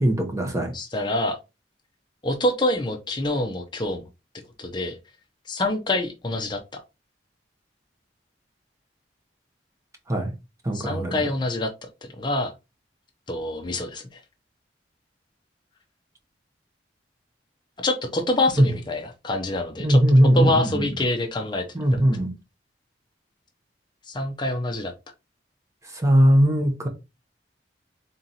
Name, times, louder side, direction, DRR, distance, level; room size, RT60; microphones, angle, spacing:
voice 1, 0.0-0.7 10.1-10.3 10.6-11.3 18.6-18.7 19.8-20.9 21.7-22.3 25.9-26.9, equal, 15° right, 0.8 m, -19 dB
voice 2, 0.7-1.4 2.2-4.0 4.6-5.0 5.5-6.8 10.7-12.5 13.3-14.2 17.8-20.0 20.3-21.6 21.9-22.0 24.1-24.9, left 2 dB, 25° left, 0.5 m, -26 dB
3.7 x 2.8 x 4.0 m
head